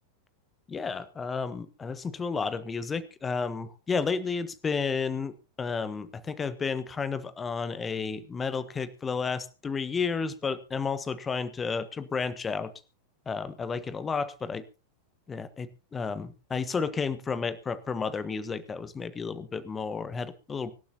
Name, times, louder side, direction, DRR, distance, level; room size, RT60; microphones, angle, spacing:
voice 1, 0.7-12.7 13.2-14.6 15.3-20.7, left 5 dB, 20° left, 14 dB, 1.3 m, -32 dB
25.0 x 12.0 x 2.9 m, 0.32 s
figure-of-eight pair, 90°, 0 cm